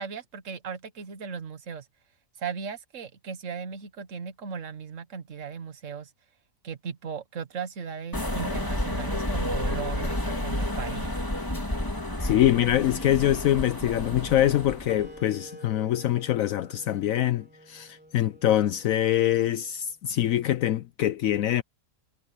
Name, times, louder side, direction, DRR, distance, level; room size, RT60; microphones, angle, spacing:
voice 1, 0.0-1.9 2.4-6.1 6.6-11.2, right 6 dB, 60° right, 1.7 m, -37 dB
sound 1, 8.1-15.1, left 1 dB, 15° left, 2.6 m, -30 dB
voice 2, 12.2-21.6, left 12 dB, 75° left, 1.0 m, -24 dB
Wind instrument woodwind instrument, 14.9-20.0, right 1 dB, 5° right, 3.6 m, -49 dB
omnidirectional pair, 1.5 m